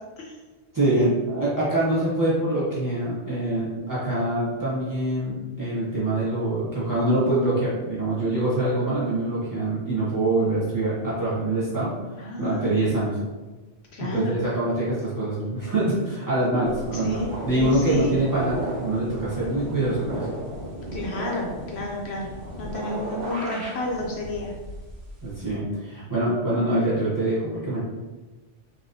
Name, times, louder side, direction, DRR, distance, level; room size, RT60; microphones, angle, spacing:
voice 1, 0.7-11.9 12.4-13.2 14.0-20.3 25.2-27.8, right 1 dB, 20° right, -9 dB, 0.9 m, -24 dB
voice 2, 12.2-13.1 13.9-14.4 16.9-18.2 20.9-22.3 22.6-24.5, left 2 dB, 70° left, -1 dB, 0.8 m, -31 dB
sound 1, 16.6-25.5, right 1 dB, 85° right, 1.5 m, -35 dB
3.0 x 2.9 x 2.7 m, 1.2 s
omnidirectional pair, 1.2 m